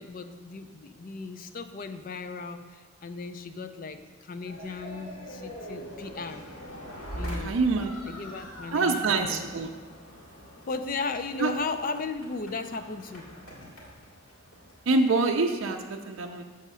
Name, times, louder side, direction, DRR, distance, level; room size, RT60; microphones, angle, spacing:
voice 1, 0.0-6.4 7.2-7.6 8.0-9.5 10.7-13.2, left 4 dB, 40° left, 9 dB, 0.4 m, -36 dB
sound 1, 4.4-15.7, equal, 75° left, 2.1 m, -43 dB
voice 2, 7.4-7.9 8.7-9.7 11.4-11.5 14.9-16.4, right 3 dB, 65° right, 3 dB, 0.5 m, -25 dB
7.2 x 4.9 x 5.5 m, 1.5 s
head